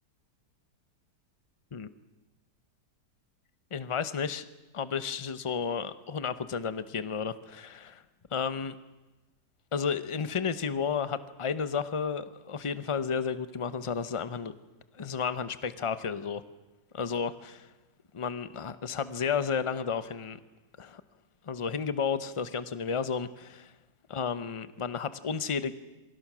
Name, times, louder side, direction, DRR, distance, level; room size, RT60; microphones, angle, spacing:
voice 1, 3.7-4.4 4.7-8.0 8.3-8.8 9.7-14.5 14.9-16.4 16.9-17.7 18.1-20.4 20.8-21.0 21.5-23.7 24.1-25.7, left 6 dB, 30° left, 12 dB, 0.5 m, -32 dB
27.5 x 24.0 x 6.2 m, 1.1 s
omnidirectional pair, 1.9 m